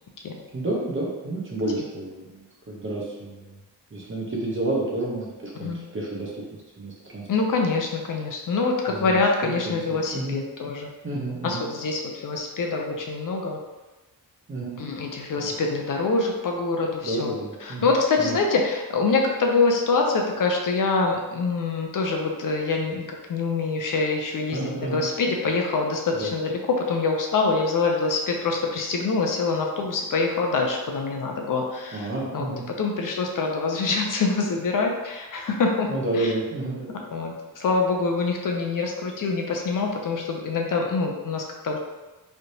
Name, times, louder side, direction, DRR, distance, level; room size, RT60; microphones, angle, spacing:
voice 1, 0.5-3.5 3.9-6.4 6.8-7.3 8.9-9.7 10.1-10.4 11.0-11.7 14.5-14.8 15.4-15.5 17.0-17.9 18.2-18.4 24.5-25.0 26.1-26.3 31.9-32.6 35.9-37.0, right 2 dB, 35° right, -4 dB, 0.8 m, -30 dB
voice 2, 7.3-10.9 11.4-13.6 14.8-17.3 17.6-32.4 32.8-35.9 36.1-36.3 37.1-41.8, left 4 dB, 60° left, 1 dB, 0.5 m, -25 dB
3.2 x 2.8 x 2.7 m, 1.1 s
wide cardioid pair, 145°, 37 cm